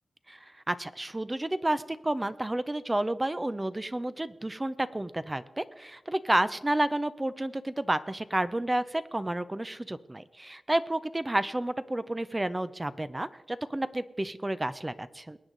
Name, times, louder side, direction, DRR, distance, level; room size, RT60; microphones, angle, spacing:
voice 1, 0.3-15.4, right 1 dB, 20° right, 13 dB, 0.6 m, -30 dB
22.0 x 9.1 x 3.9 m, 0.99 s
wide cardioid pair, 85°, 0 cm